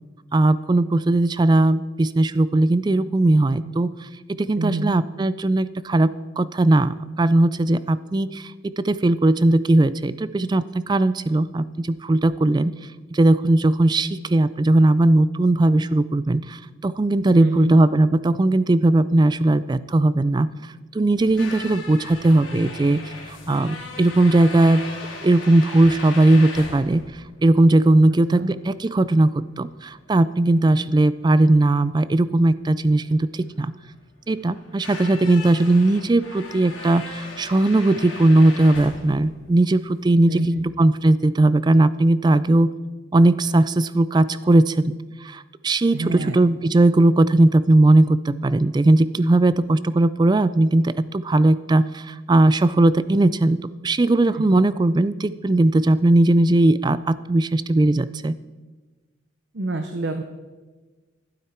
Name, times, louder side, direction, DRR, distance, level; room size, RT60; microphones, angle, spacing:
voice 1, 0.3-3.9 4.3-12.7 13.1-20.5 20.9-23.0 23.5-24.8 25.2-27.0 27.4-33.7 34.3-42.7 43.1-44.9 45.2-53.6 53.8-58.3, right 2 dB, 20° right, 16 dB, 0.3 m, -18 dB
voice 2, 4.6-5.0 17.3-17.7 28.0-28.5 40.3-40.7 45.9-46.4 54.3-54.6 59.5-60.2, right 2 dB, 65° right, 6 dB, 0.8 m, -27 dB
sound 1, 21.1-40.0, left 3 dB, 85° left, 3.1 m, -38 dB
12.5 x 12.0 x 4.4 m, 1.3 s
head